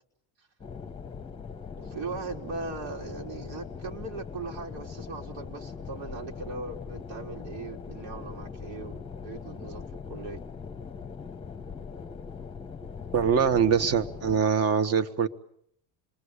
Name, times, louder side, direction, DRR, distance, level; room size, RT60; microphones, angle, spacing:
sound 1, 0.6-14.4, left 5 dB, 10° left, 1.1 m, -41 dB
voice 1, 1.8-9.8 10.1-10.4, right 3 dB, 75° right, 0 dB, 3.8 m, -39 dB
voice 2, 13.1-15.3, right 7 dB, 35° right, 12 dB, 1.4 m, -23 dB
28.0 x 22.5 x 8.2 m, 0.70 s
cardioid pair, 165°, 44 cm